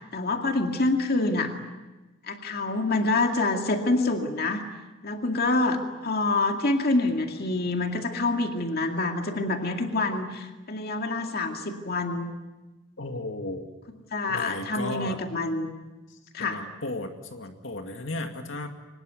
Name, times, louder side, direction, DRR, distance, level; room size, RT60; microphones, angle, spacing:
voice 1, 0.1-1.5 2.3-4.6 5.0-12.3 14.1-15.7 16.3-16.6, left 2 dB, 55° left, 4 dB, 2.3 m, -26 dB
voice 2, 13.0-13.7 14.3-15.2 16.4-18.7, left 2 dB, 85° left, 5 dB, 2.3 m, -34 dB
24.0 x 20.5 x 9.2 m, 1.2 s
head